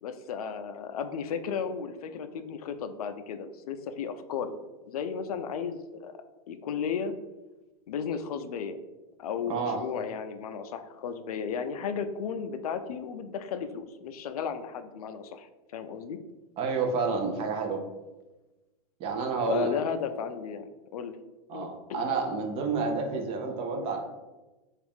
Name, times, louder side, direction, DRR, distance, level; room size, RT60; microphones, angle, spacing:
voice 1, 0.0-4.6 4.9-6.2 6.5-7.1 7.9-8.8 9.2-15.5 15.7-16.2 19.5-21.2 21.5-22.1, left 6 dB, 80° left, 9 dB, 0.4 m, -34 dB
voice 2, 9.5-9.8 16.6-17.8 19.0-19.7 21.5-24.0, right 4 dB, 30° right, 3 dB, 0.6 m, -29 dB
3.4 x 2.4 x 3.4 m, 1.1 s
hypercardioid pair, 130°, 19 cm